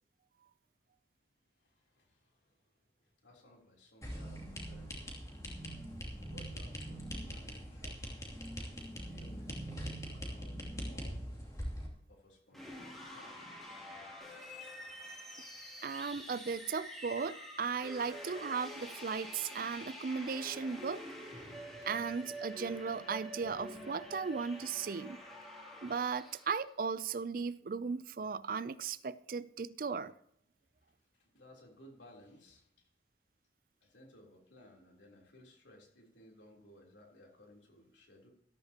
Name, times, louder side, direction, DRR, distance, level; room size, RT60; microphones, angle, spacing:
voice 1, 1.6-5.2 6.2-7.9 9.0-11.3 12.1-13.5 30.9-32.9 33.8-38.3, left 1 dB, 85° left, 0 dB, 3.6 m, -60 dB
sound 1, 4.0-11.9, equal, 20° left, 2.7 m, -42 dB
sound 2, 12.5-26.7, equal, ahead, 2.8 m, -47 dB
voice 2, 15.8-21.0 21.9-25.2 25.8-30.1, right 5 dB, 50° right, 16 dB, 0.4 m, -36 dB
14.0 x 13.5 x 2.9 m, 0.75 s
head